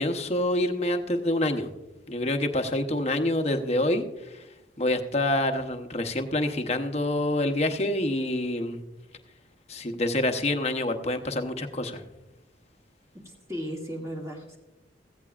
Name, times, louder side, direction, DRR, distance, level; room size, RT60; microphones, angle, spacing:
voice 1, 0.0-1.7 2.1-4.1 4.3-4.4 4.8-8.8 9.7-12.0, left 1 dB, 35° left, 6 dB, 0.9 m, -27 dB
voice 2, 13.2-14.6, equal, 15° right, -2 dB, 2.0 m, -36 dB
15.5 x 15.0 x 2.5 m, 0.99 s
head